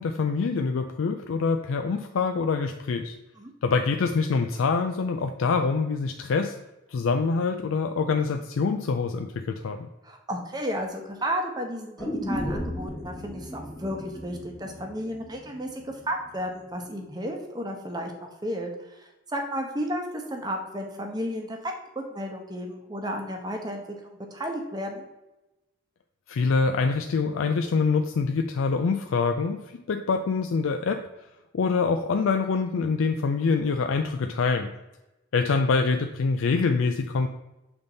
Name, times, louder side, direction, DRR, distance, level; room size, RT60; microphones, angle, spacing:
voice 1, 0.0-3.2 3.6-6.5 6.9-9.8 26.3-29.6 29.9-31.0 31.5-34.7 35.3-37.3, left 4 dB, 85° left, 5 dB, 0.4 m, -25 dB
voice 2, 10.0-25.0, equal, 20° right, 3 dB, 0.9 m, -33 dB
sound 1, 12.0-16.0 16.3-16.4, left 1 dB, 5° left, 1.3 m, -35 dB
7.2 x 3.5 x 3.9 m, 0.97 s
head